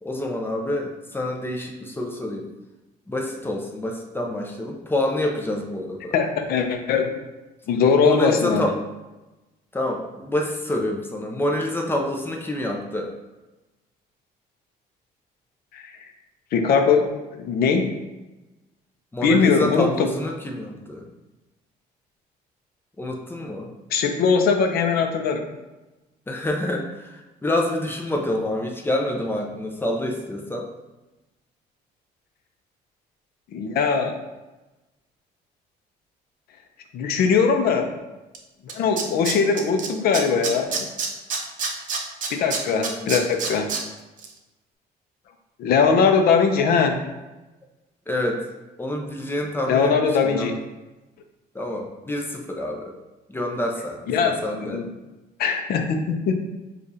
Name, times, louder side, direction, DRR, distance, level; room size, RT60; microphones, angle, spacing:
voice 1, 0.0-2.5 3.1-6.1 8.0-8.7 9.7-13.1 19.1-21.0 23.0-23.7 26.3-30.7 42.7-43.1 48.1-48.4 48.8-50.5 51.5-52.9 53.3-54.8, left 1 dB, 10° left, 1 dB, 0.6 m, -27 dB
voice 2, 6.1-7.1 7.7-8.7 15.7-15.9 16.5-17.1 17.4-17.9 19.2-20.1 23.9-25.4 33.5-34.2 36.9-37.9 38.6-40.7 42.3-43.7 45.6-47.0 49.7-50.5 54.1-54.9 55.4-56.4, left 5 dB, 65° left, 5 dB, 0.6 m, -20 dB
Tools, 38.3-38.4 38.7-39.9 40.1-43.8 44.2-44.3, right 5 dB, 50° right, 0.7 m, -27 dB
6.5 x 2.4 x 2.7 m, 1.1 s
cardioid pair, 110°, 17 cm